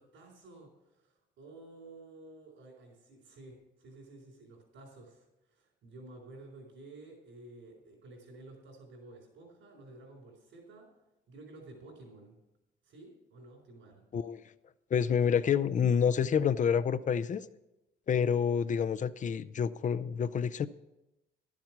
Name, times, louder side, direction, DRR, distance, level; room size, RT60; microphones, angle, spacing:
voice 1, 0.0-10.9 11.3-12.4 12.8-14.0, right 2 dB, 75° right, -6 dB, 4.1 m, -52 dB
voice 2, 14.9-17.5 18.1-20.7, left 7 dB, 40° left, 13 dB, 0.5 m, -28 dB
12.0 x 7.4 x 6.0 m, 0.96 s
cardioid pair, 90°, 20 cm